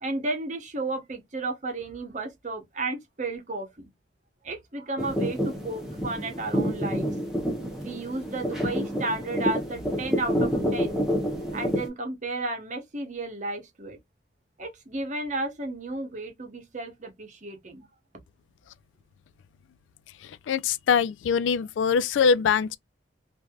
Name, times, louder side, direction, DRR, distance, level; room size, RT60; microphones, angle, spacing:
voice 1, 0.0-3.9 4.4-7.1 7.8-11.0 11.5-14.0 14.6-17.9, right 2 dB, 40° right, 0.8 m, -33 dB
sound 1, 5.0-11.9, equal, 5° right, 0.8 m, -28 dB
voice 2, 20.5-22.8, left 6 dB, 85° left, 0.3 m, -23 dB
3.1 x 2.6 x 2.2 m
head